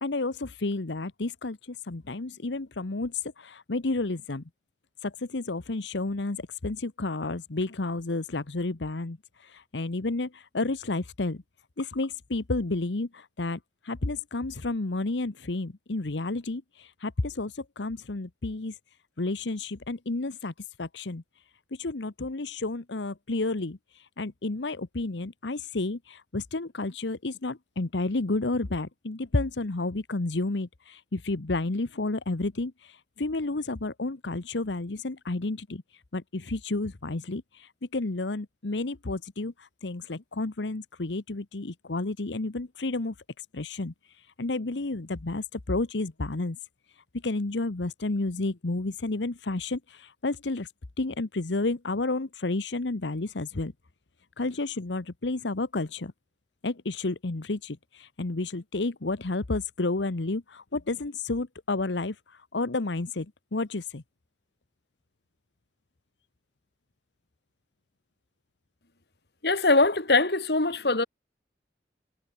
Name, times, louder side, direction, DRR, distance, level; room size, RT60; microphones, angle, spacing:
voice 1, 0.0-4.4 5.0-11.4 11.8-18.8 19.2-20.5 20.8-21.2 21.7-46.6 46.9-50.7 51.0-53.7 54.4-56.1 56.6-64.0, left 2 dB, 85° left, 1.1 m, -31 dB
voice 2, 69.4-71.0, left 3 dB, 65° left, 2.3 m, -22 dB
head